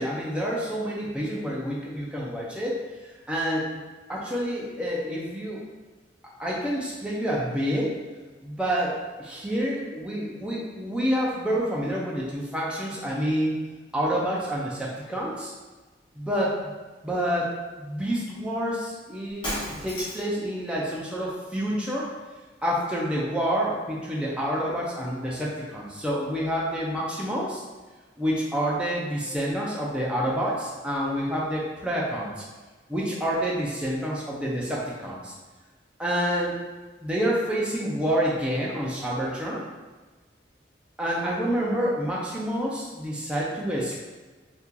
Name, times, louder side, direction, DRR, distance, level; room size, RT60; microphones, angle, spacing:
voice 1, 0.0-2.8 3.3-3.8 4.1-5.6 6.4-8.0 8.4-13.6 13.9-15.5 16.2-16.5 17.0-22.1 22.6-27.6 28.2-32.3 32.9-35.3 36.0-36.6 37.0-39.6 41.0-44.0, equal, 5° right, -5 dB, 0.5 m, -28 dB
Shatter, 19.4-20.4, equal, 25° left, 1.1 m, -33 dB
2.8 x 2.4 x 3.7 m, 1.3 s
head